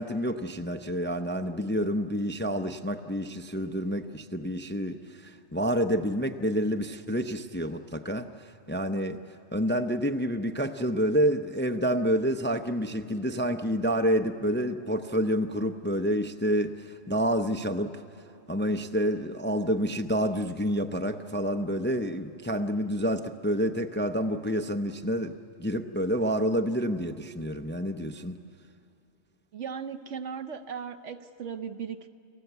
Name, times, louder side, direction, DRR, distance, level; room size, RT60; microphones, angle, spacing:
voice 1, 0.0-9.2 9.5-18.0 18.5-28.4, equal, 15° left, 7 dB, 0.5 m, -28 dB
voice 2, 29.5-32.1, right 7 dB, 75° right, 8 dB, 1.3 m, -37 dB
30.0 x 20.0 x 8.1 m, 2.6 s
omnidirectional pair, 1.2 m